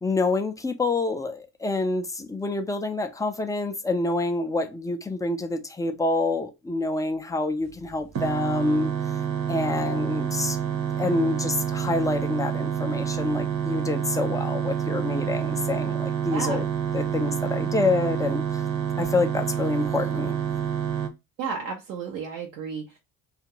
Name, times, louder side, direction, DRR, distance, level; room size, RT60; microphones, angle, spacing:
voice 1, 0.0-8.9 9.5-10.6 11.0-16.6 16.9-18.6 19.0-20.4, left 3 dB, 5° left, 0.4 m, -27 dB
sound 1, 8.2-21.1, right 8 dB, 35° right, 0.7 m, -28 dB
voice 2, 16.3-16.6 21.4-23.0, right 5 dB, 85° right, 0.6 m, -32 dB
2.5 x 2.4 x 2.9 m
hypercardioid pair, 50°, 49 cm